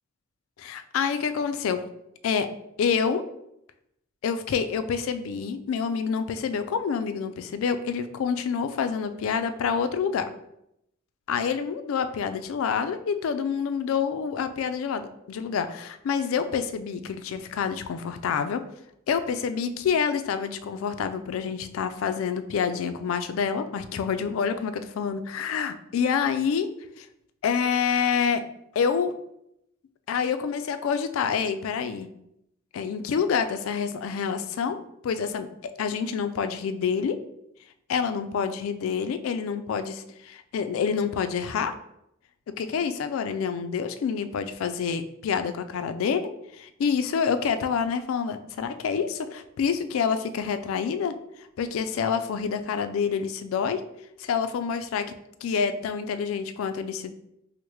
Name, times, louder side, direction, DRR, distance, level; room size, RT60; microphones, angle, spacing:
voice 1, 0.6-1.8 2.2-2.5 2.8-3.2 4.2-10.3 11.3-18.6 19.1-26.7 27.0-27.1 27.4-28.4 28.8-29.1 30.1-32.1 32.7-37.2 37.9-41.7 42.5-51.1 51.6-53.8 54.2-55.1 55.4-57.1, left 6 dB, 80° left, 10 dB, 0.3 m, -27 dB
4.5 x 2.1 x 3.1 m, 0.80 s
head